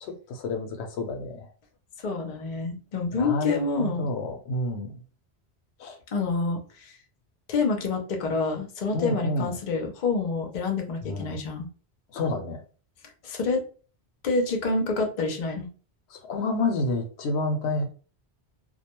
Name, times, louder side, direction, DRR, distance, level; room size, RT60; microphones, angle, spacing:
voice 1, 0.0-1.5 3.1-4.9 5.8-6.0 8.9-9.5 11.0-11.4 12.1-12.6 16.1-17.8, left 2 dB, 80° left, 5 dB, 0.8 m, -29 dB
voice 2, 2.0-4.1 6.1-7.0 7.5-11.7 13.2-13.6 14.2-15.7, left 3 dB, 50° left, 3 dB, 0.6 m, -27 dB
2.3 x 2.2 x 2.8 m, 0.38 s
omnidirectional pair, 1.1 m